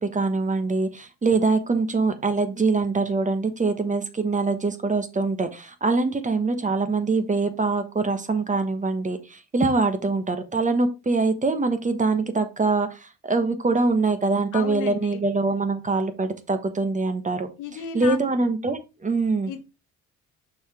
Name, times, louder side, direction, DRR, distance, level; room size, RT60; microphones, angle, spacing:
voice 1, 0.0-17.5 17.9-19.5, right 3 dB, 25° right, 9 dB, 1.1 m, -24 dB
voice 2, 14.5-15.2 17.6-18.2 19.5-19.6, left 8 dB, 85° left, 7 dB, 1.3 m, -33 dB
6.2 x 4.9 x 3.4 m, 0.27 s
cardioid pair, 90°, 30 cm